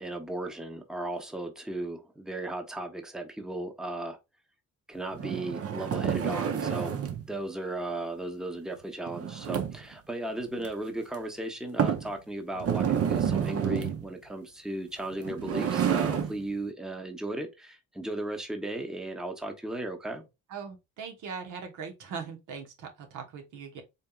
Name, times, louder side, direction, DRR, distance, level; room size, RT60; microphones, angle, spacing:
voice 1, 0.0-4.2 4.9-7.0 7.3-20.3, right 1 dB, ahead, 0.8 m, -36 dB
sound 1, 5.1-7.3 9.1-9.9 10.6-10.7 11.1-11.2 11.8-12.1 12.6-14.1 15.1-16.4, right 8 dB, 50° right, 0.7 m, -29 dB
voice 2, 20.5-23.8, right 6 dB, 85° right, 1.2 m, -40 dB
4.2 x 3.3 x 2.4 m
cardioid pair, 90°, 30 cm